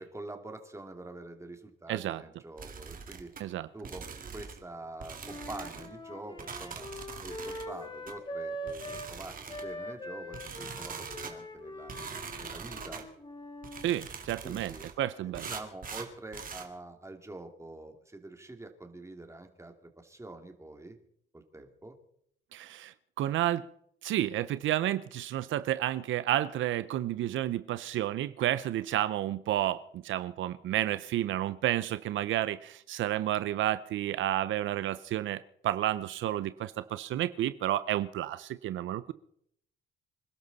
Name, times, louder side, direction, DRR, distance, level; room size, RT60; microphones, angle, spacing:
voice 1, 0.0-3.3 3.7-4.1 4.3-6.9 7.2-11.9 12.4-13.1 14.4-14.9 15.2-21.0 21.3-22.0, right 2 dB, 15° right, 5 dB, 2.5 m, -46 dB
voice 2, 1.9-2.2 3.4-3.7 13.8-15.5 22.5-23.7 24.0-39.1, right 13 dB, 75° right, 14 dB, 0.6 m, -31 dB
sound 1, 2.6-3.4 3.8-4.6 5.0-5.9 6.4-7.7 8.1-8.2 8.7-9.7 10.3-11.4 11.9-13.1 13.6-14.9 15.3-16.7, right 6 dB, 45° right, 2.3 m, -43 dB
Wind instrument woodwind instrument, 5.2-9.1 9.5-13.9, equal, 25° left, 2.3 m, -42 dB
27.0 x 12.0 x 4.1 m, 0.68 s
cardioid pair, 90°, 20 cm